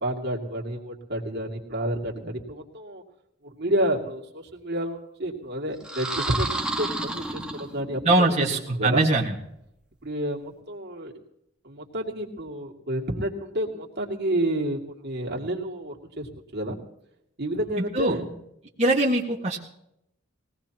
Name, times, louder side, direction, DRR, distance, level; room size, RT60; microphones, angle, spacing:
voice 1, 0.0-3.0 3.4-9.1 10.0-11.1 11.6-16.8 17.4-18.4, right 1 dB, 55° right, -1 dB, 2.6 m, -30 dB
sound 1, 5.8-8.1, right 2 dB, 5° right, 1.7 m, -31 dB
voice 2, 8.1-9.4 17.9-18.2 18.8-19.6, right 2 dB, 35° right, -4 dB, 1.8 m, -22 dB
21.0 x 18.0 x 3.0 m, 0.80 s
head